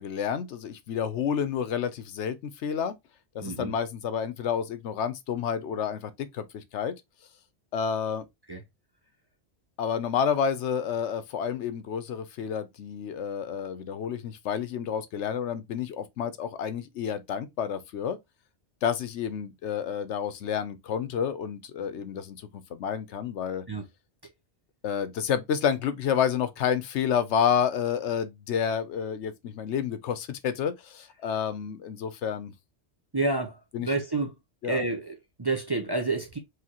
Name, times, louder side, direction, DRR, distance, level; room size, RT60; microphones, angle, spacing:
voice 1, 0.0-3.0 3.3-6.9 7.7-8.2 9.8-18.2 18.8-23.6 24.8-32.5 33.7-33.9 34.6-34.8, left 8 dB, 80° left, 1.0 m, -29 dB
voice 2, 3.4-3.7 8.5-8.6 23.7-23.8 33.1-34.3 34.6-36.4, right 3 dB, 25° right, 0.6 m, -29 dB
4.9 x 2.9 x 2.9 m
omnidirectional pair, 1.2 m